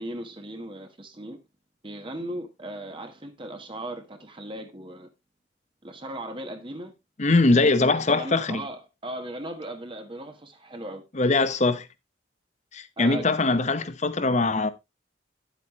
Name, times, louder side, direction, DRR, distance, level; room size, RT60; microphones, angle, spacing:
voice 1, 0.0-1.4 1.8-5.1 5.8-6.9 7.5-11.0 13.0-13.2, right 1 dB, 25° right, 1.2 m, -37 dB
voice 2, 7.2-8.6 11.1-11.9 12.7-14.7, left 3 dB, 40° left, 0.9 m, -22 dB
10.5 x 8.4 x 3.1 m
head